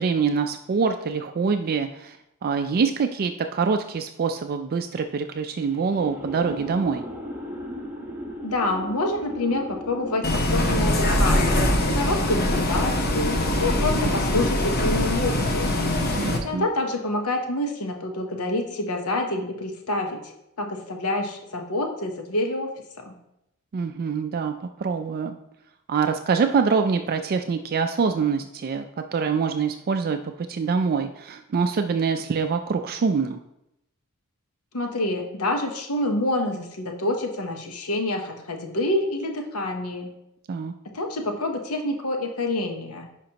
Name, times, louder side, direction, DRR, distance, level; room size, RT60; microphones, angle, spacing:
voice 1, 0.0-2.2 2.4-7.1 16.0-16.7 23.7-25.4 25.9-28.9 29.1-33.4 40.5-40.7, right 5 dB, 45° right, 7 dB, 0.4 m, -25 dB
sound 1, 5.6-16.8, equal, 10° right, 1.2 m, -37 dB
voice 2, 8.4-15.8 16.4-23.2 34.7-40.1 40.8-43.1, left 2 dB, 75° left, 4 dB, 1.0 m, -27 dB
Bus, 10.2-16.4, left 1 dB, 45° left, 1.0 m, -23 dB
10.5 x 5.1 x 2.9 m, 0.84 s
head